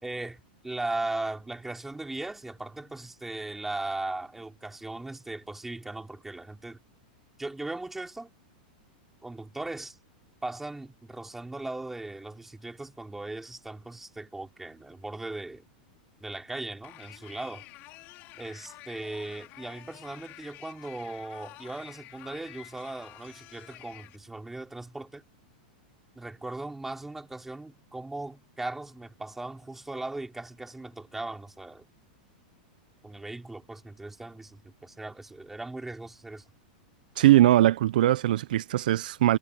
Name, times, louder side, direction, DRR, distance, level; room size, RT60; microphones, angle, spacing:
voice 1, 0.0-6.8 7.4-8.3 9.2-10.0 10.4-15.6 16.2-17.6 18.4-25.2 26.2-31.8 33.0-36.4, right 2 dB, 5° right, 4.3 m, -38 dB
sound 1, 16.8-24.2, left 20 dB, 40° left, 5.4 m, -49 dB
voice 2, 37.2-39.4, right 14 dB, 75° right, 0.7 m, -21 dB
supercardioid pair, 155°, 5 cm